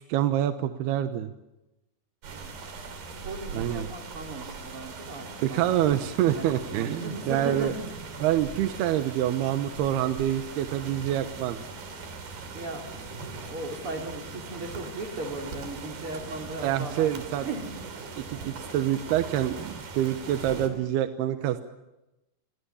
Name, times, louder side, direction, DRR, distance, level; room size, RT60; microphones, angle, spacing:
voice 1, 0.1-1.3 3.5-3.9 5.4-7.7 8.2-11.6 16.6-17.5 18.2-21.6, right 11 dB, 90° right, 9 dB, 3.1 m, -26 dB
sound 1, 2.2-20.7, right 4 dB, 70° right, 5.0 m, -40 dB
voice 2, 3.1-6.1 6.3-7.9 12.5-12.9 13.4-17.7, right 2 dB, 35° right, 3 dB, 3.8 m, -37 dB
29.0 x 23.0 x 7.1 m, 0.96 s
omnidirectional pair, 4.5 m